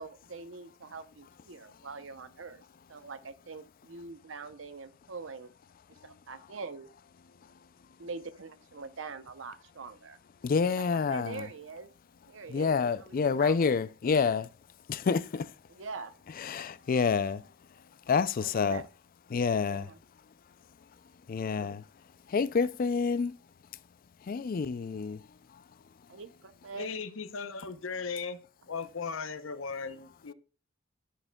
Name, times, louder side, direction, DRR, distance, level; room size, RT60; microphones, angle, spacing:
voice 1, 0.0-2.6 2.9-5.5 5.9-6.9 8.0-10.2 10.6-11.9 12.3-12.7 13.0-13.6 15.7-16.1 18.4-18.8 19.6-20.0 21.4-21.8 26.1-26.9, right 4 dB, 70° right, 0.7 m, -43 dB
voice 2, 10.4-11.4 12.5-14.5 14.9-15.5 16.4-17.4 18.1-18.8 19.3-19.9 21.3-21.8 22.3-23.3 24.3-25.2, left 5 dB, 45° left, 0.4 m, -28 dB
voice 3, 26.7-28.4 28.7-30.3, left 5 dB, 85° left, 0.7 m, -37 dB
11.5 x 6.5 x 2.3 m
head